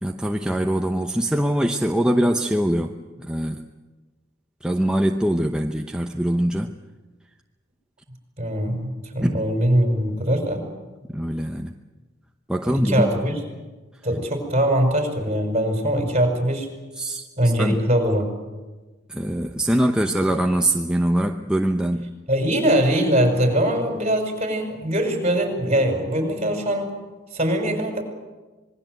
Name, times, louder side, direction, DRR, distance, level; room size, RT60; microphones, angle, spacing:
voice 1, 0.0-3.6 4.6-6.8 9.2-9.4 11.1-11.7 12.5-13.1 17.0-17.8 19.1-22.1, right 1 dB, 5° right, 3 dB, 0.8 m, -23 dB
voice 2, 8.4-10.6 12.6-13.4 14.0-16.7 17.4-18.3 22.3-26.9 27.3-28.0, right 1 dB, 35° right, 4 dB, 5.7 m, -22 dB
26.5 x 21.0 x 7.9 m, 1.2 s
head